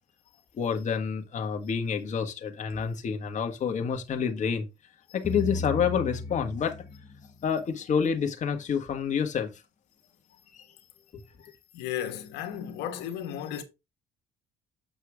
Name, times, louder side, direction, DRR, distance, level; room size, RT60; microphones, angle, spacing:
voice 1, 0.6-4.7 5.1-6.8 7.4-9.5 10.5-10.6 11.1-11.5, left 7 dB, 45° left, 1.6 m, -28 dB
sound 1, 5.2-7.5, left 3 dB, 30° left, 1.1 m, -35 dB
voice 2, 11.7-13.6, left 10 dB, 90° left, 1.4 m, -34 dB
8.0 x 6.5 x 3.5 m
cardioid pair, 110°, 17 cm